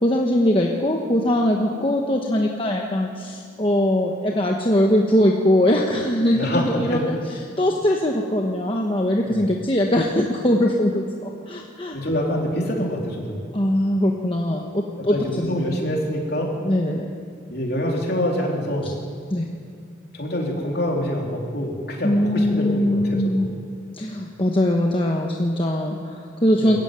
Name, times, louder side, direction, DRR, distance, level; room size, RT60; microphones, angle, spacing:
voice 1, 0.0-12.0 13.5-15.6 16.6-17.1 19.3-19.5 22.0-23.5 23.9-26.8, left 1 dB, 25° left, 0 dB, 1.2 m, -21 dB
voice 2, 6.3-7.0 9.3-9.4 11.9-13.4 15.1-16.5 17.5-18.9 20.1-23.4 26.6-26.8, equal, 50° left, -1 dB, 3.9 m, -25 dB
22.5 x 14.5 x 9.3 m, 2.2 s
head